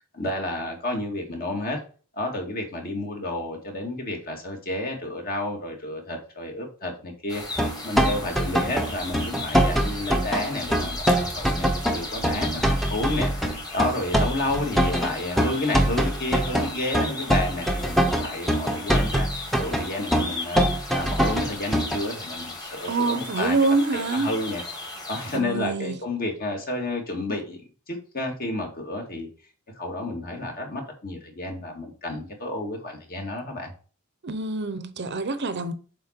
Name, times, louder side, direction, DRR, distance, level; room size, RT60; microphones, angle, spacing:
voice 1, 0.0-1.8 2.1-7.4 7.8-11.0 11.4-20.6 20.9-23.6 23.9-24.6 25.1-29.3 29.8-33.7, left 1 dB, 45° left, 2.1 m, -31 dB
sound 1, 7.3-25.4, left 2 dB, 20° left, 1.8 m, -36 dB
sound 2, 7.6-22.0, equal, ahead, 0.8 m, -23 dB
voice 2, 22.9-24.3 25.3-26.0 34.2-35.7, right 3 dB, 55° right, 0.7 m, -25 dB
7.6 x 4.3 x 4.5 m
head